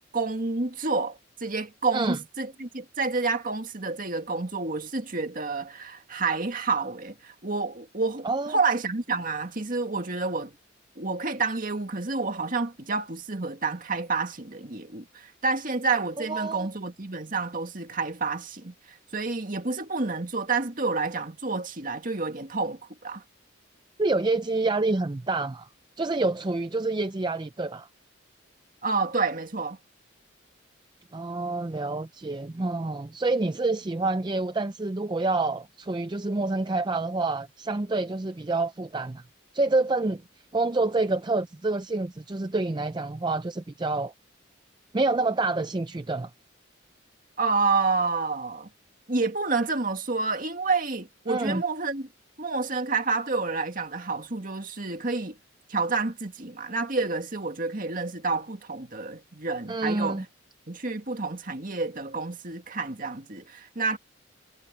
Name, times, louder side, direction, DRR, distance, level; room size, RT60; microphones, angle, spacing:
voice 1, 0.0-10.5 11.0-23.2 28.8-29.8 47.4-48.7 49.1-52.1 52.4-55.3 55.7-60.2 60.7-64.0, right 4 dB, 45° right, 2.1 m, -29 dB
voice 2, 8.2-8.6 16.3-16.7 24.0-25.7 26.0-27.9 31.1-39.2 39.5-40.2 40.5-44.1 44.9-46.3 51.3-51.6 59.7-60.2, right 2 dB, 20° right, 0.5 m, -27 dB
head